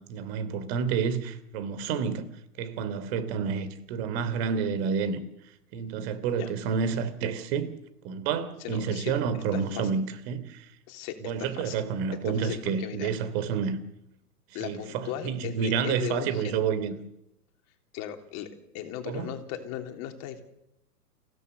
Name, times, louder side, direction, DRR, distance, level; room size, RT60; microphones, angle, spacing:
voice 1, 0.1-2.3 2.6-5.2 5.7-7.7 8.0-10.7 11.2-13.8 14.6-16.9 19.1-19.3, right 6 dB, 40° right, 3.3 m, -29 dB
voice 2, 8.6-9.1 9.5-9.9 10.9-11.8 12.2-13.1 14.5-16.6 17.9-18.5 18.7-20.4, left 11 dB, 35° left, 3.4 m, -37 dB
28.5 x 16.5 x 6.9 m
figure-of-eight pair, 110°, 48 cm